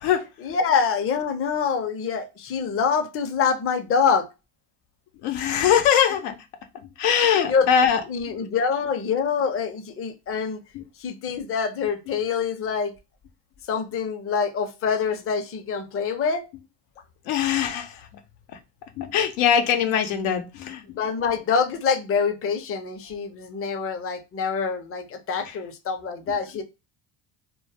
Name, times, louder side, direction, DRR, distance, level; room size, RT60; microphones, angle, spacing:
voice 1, 0.4-4.3 7.5-7.7 8.1-10.6 11.0-12.9 13.7-16.5 20.9-26.6, left 6 dB, 30° left, 0.5 m, -25 dB
voice 2, 5.2-6.3 7.0-8.0 10.7-10.8 17.3-18.0 19.0-20.8, left 8 dB, 85° left, 0.7 m, -21 dB
2.2 x 2.1 x 3.3 m
supercardioid pair, 75°, 50 cm